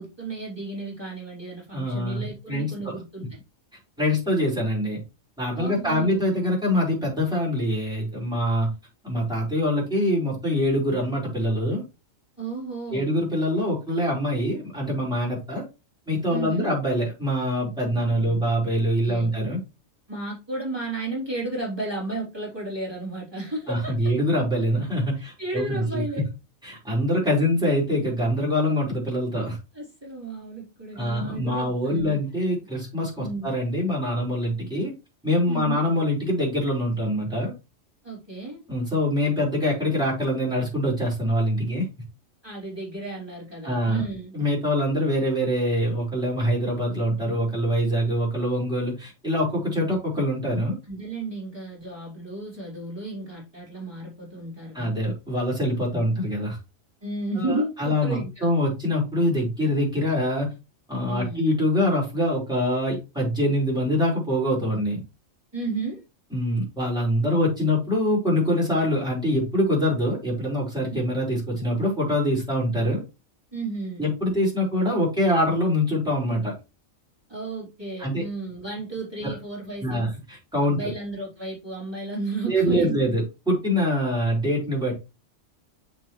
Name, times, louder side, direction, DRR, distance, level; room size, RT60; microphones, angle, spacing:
voice 1, 0.0-3.4 5.5-6.2 12.4-13.1 16.3-16.7 17.9-18.4 19.0-19.3 20.1-23.9 25.2-26.3 29.7-32.2 33.2-33.6 35.5-35.8 38.0-38.6 42.4-44.3 50.9-54.9 55.9-56.0 57.0-58.5 61.1-61.4 65.5-66.0 70.9-71.0 73.5-74.0 74.6-74.7 77.3-80.0 80.6-83.0, right 2 dB, 20° right, -5 dB, 3.8 m, -33 dB
voice 2, 1.7-2.7 4.0-5.0 5.4-8.7 9.0-11.8 12.9-15.6 16.1-19.6 23.7-26.2 26.6-29.6 31.0-34.9 35.2-37.5 38.7-41.9 43.6-44.0 44.3-50.8 54.7-56.6 57.4-60.5 60.9-65.0 66.3-73.0 74.0-76.5 78.0-78.2 79.8-80.8 82.5-84.9, equal, 5° right, -5 dB, 5.1 m, -24 dB
7.6 x 6.7 x 3.2 m, 0.28 s
omnidirectional pair, 1.4 m